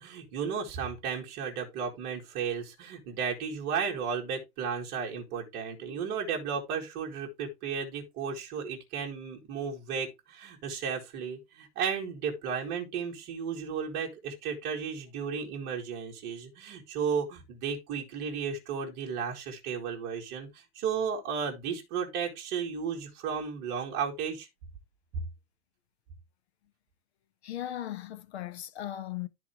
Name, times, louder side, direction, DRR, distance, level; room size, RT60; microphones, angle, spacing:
voice 1, 0.0-20.5 20.8-24.5 25.1-25.2, right 6 dB, 20° right, 2.5 m, -34 dB
voice 2, 27.4-29.3, left 12 dB, 45° left, 0.9 m, -37 dB
13.0 x 4.7 x 3.5 m
hypercardioid pair, 175°, 46 cm